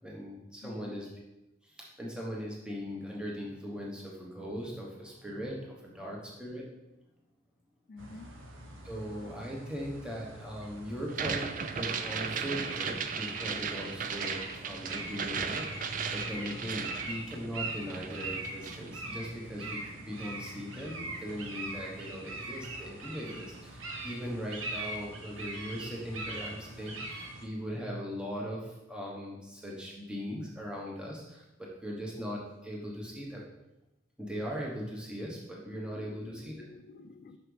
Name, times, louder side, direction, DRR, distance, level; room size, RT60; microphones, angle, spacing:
voice 1, 0.0-1.1 1.6-6.7 8.8-11.5 11.7-33.4 34.2-36.5, equal, 5° right, -3 dB, 1.0 m, -39 dB
voice 2, 0.6-1.0 7.9-8.4 35.9-37.4, left 3 dB, 45° left, 10 dB, 0.3 m, -49 dB
sound 1, 8.0-27.5, right 2 dB, 85° right, 0.9 m, -42 dB
sound 2, 11.1-17.6 17.9-18.9, right 6 dB, 40° right, 0.4 m, -36 dB
6.0 x 5.8 x 3.3 m, 0.96 s
head